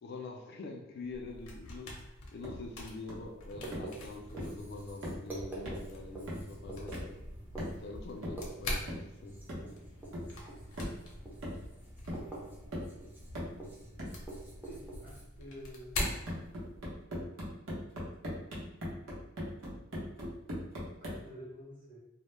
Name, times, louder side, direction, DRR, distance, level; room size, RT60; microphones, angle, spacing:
voice 1, 0.0-2.0 2.3-7.2 7.7-9.4, left 3 dB, 50° left, 2 dB, 0.3 m, -45 dB
sound 1, 1.1-17.0, left 1 dB, 90° left, 0.6 m, -44 dB
sound 2, 2.4-2.7 3.1-3.3 3.7-4.0 4.4-4.6 5.0-5.3 5.7-5.9 6.3-6.6 6.9-7.2 7.6-7.9 8.2-8.5 8.9-9.1 9.5-9.7 10.1-10.4 10.8-11.0 11.4-11.8 12.1-12.3 12.7-13.0 13.4-13.6 14.0-14.2 16.0-21.3, equal, 70° right, 0.7 m, -40 dB
Writing, 3.5-15.2, right 2 dB, 10° right, 0.5 m, -47 dB
voice 2, 14.6-16.1 21.0-22.0, equal, 40° right, -5 dB, 0.9 m, -49 dB
2.1 x 2.0 x 3.0 m, 0.90 s
head